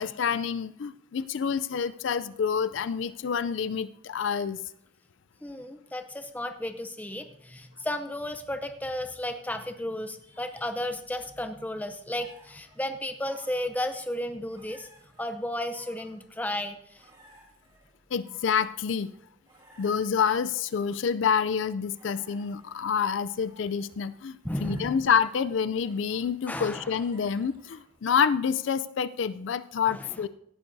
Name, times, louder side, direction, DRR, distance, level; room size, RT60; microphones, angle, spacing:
voice 1, 0.0-4.6 18.1-19.1 19.8-30.3, left 7 dB, 80° left, 14 dB, 0.4 m, -28 dB
voice 2, 5.4-14.9 15.2-17.1 24.4-25.0 26.5-26.9 29.9-30.2, left 1 dB, 10° left, 8 dB, 0.6 m, -34 dB
sound 1, 12.2-28.2, right 1 dB, 25° right, 2.8 m, -59 dB
17.5 x 11.5 x 2.7 m, 0.71 s
head